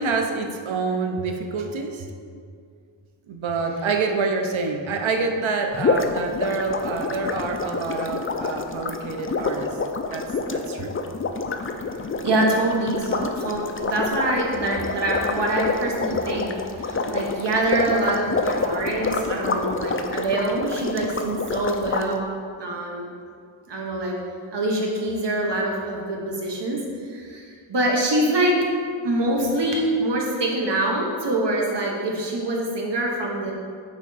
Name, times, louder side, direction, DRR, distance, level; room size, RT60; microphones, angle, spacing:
voice 1, 0.0-2.1 3.3-9.7 10.1-11.0, right 4 dB, 80° right, 4 dB, 0.7 m, -27 dB
sound 1, 5.7-22.1, left 4 dB, 30° left, 0.4 m, -27 dB
voice 2, 12.2-16.5 16.8-22.3 22.6-23.1 23.7-24.2 24.5-28.6 29.0-33.5, right 1 dB, 65° right, -1 dB, 1.3 m, -25 dB
8.8 x 3.6 x 4.1 m, 2.2 s
wide cardioid pair, 85°, 46 cm